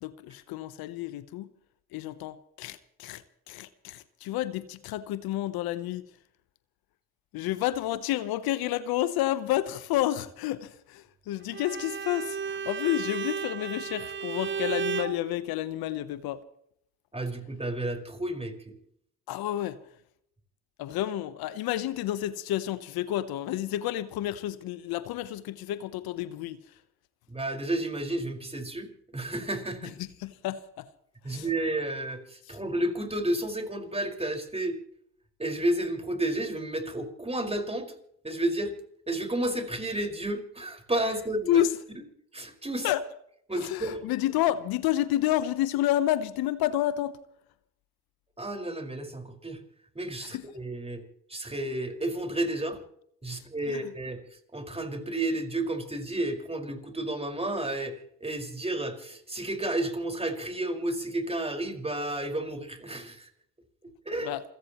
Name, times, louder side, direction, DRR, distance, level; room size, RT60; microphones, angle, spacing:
voice 1, 0.0-1.5 1.9-6.0 7.3-16.4 19.3-19.8 20.8-26.6 30.2-30.9 31.3-31.5 32.5-32.6 41.5-41.7 42.8-43.0 43.5-47.2 50.3-50.4 53.3-53.8 64.2-64.4, left 14 dB, 75° left, 1.0 m, -30 dB
Bowed string instrument, 11.5-15.2, right 6 dB, 30° right, 0.8 m, -33 dB
voice 2, 17.1-18.7 27.3-29.9 31.2-34.8 35.4-37.9 38.2-38.8 39.1-41.6 42.3-42.9 43.5-44.1 48.4-49.6 49.9-51.0 51.3-52.8 53.2-63.3 64.0-64.3, right 1 dB, 15° right, 5.2 m, -31 dB
28.0 x 16.0 x 3.1 m
hypercardioid pair, 60°, 37 cm